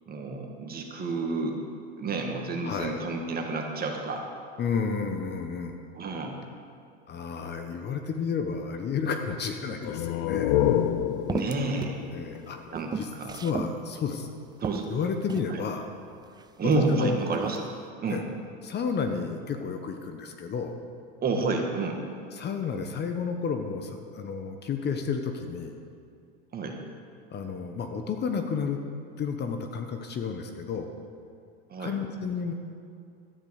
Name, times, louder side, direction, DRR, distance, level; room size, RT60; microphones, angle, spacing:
voice 1, 0.1-1.6 2.0-4.3 5.9-6.4 11.3-12.0 12.7-13.4 14.6-14.9 15.5-15.6 16.6-17.7 18.0-18.2 21.2-22.0 26.5-26.8 31.7-32.0, right 3 dB, 30° right, 2 dB, 2.1 m, -30 dB
voice 2, 2.6-3.0 4.6-5.8 7.1-10.6 12.1-12.6 13.0-14.3 14.9-15.9 16.7-17.2 18.1-18.2 18.6-20.8 22.3-25.7 27.3-28.8 29.2-30.9 31.8-32.5, left 5 dB, 35° left, 6 dB, 1.2 m, -31 dB
sound 1, 9.8-13.3, left 11 dB, 65° left, 0.7 m, -28 dB
sound 2, 10.5-10.6 11.3-12.0 12.4-13.8 14.2-14.3 14.6-15.6 16.3-17.0 17.3-17.7, right 5 dB, 15° right, 0.4 m, -35 dB
12.5 x 10.5 x 6.6 m, 2.3 s
hypercardioid pair, 100°, 31 cm